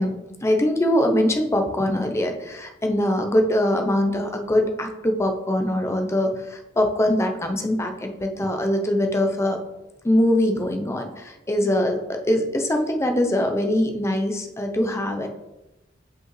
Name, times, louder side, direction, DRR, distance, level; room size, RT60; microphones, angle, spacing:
voice 1, 0.0-9.6 10.0-15.3, left 1 dB, 15° left, 4 dB, 0.5 m, -22 dB
6.0 x 5.2 x 3.1 m, 1.0 s
head